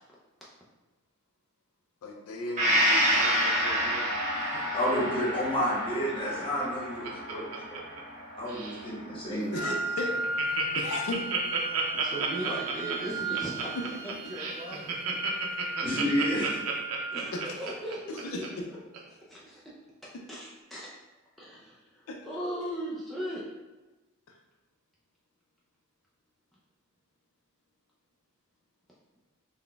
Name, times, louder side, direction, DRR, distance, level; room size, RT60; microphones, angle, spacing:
voice 1, 2.0-4.7 9.5-11.3 14.2-14.9 17.3-17.6 18.1-18.4 22.1-22.2, left 2 dB, 70° left, 1 dB, 0.4 m, -37 dB
Gong, 2.6-10.2 10.6-10.7, equal, 35° right, 1.0 m, -29 dB
voice 2, 4.7-7.8 8.4-9.7 15.8-16.6, equal, 25° left, -5 dB, 1.0 m, -30 dB
Laughter, 6.4-8.2 8.5-8.8 9.3-9.4 9.7-9.8 10.0-18.5 18.9-19.0, right 6 dB, 85° right, 0.6 m, -32 dB
Wind instrument woodwind instrument, 9.5-17.5, right 2 dB, 65° right, 0.9 m, -36 dB
voice 3, 11.9-15.1 17.1-18.5 19.1-19.7 20.0-20.9 21.4-23.4, equal, ahead, -7 dB, 0.4 m, -38 dB
3.8 x 2.1 x 3.3 m, 1.1 s
head